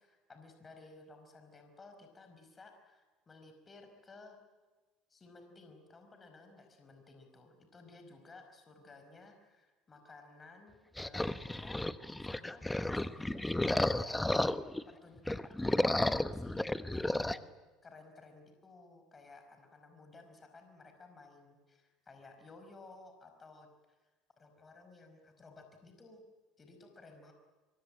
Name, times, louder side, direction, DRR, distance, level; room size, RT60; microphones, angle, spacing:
voice 1, 0.0-4.4 5.1-11.8 12.2-14.4 14.9-16.5 16.9-17.5 17.8-24.0 24.4-26.2 26.6-27.3, left 3 dB, 25° left, 5 dB, 5.1 m, -56 dB
sound 1, 11.0-14.8 15.2-17.4, left 1 dB, 10° left, 1.0 m, -32 dB
24.5 x 22.0 x 8.9 m, 1.3 s
supercardioid pair, 95°, 0 cm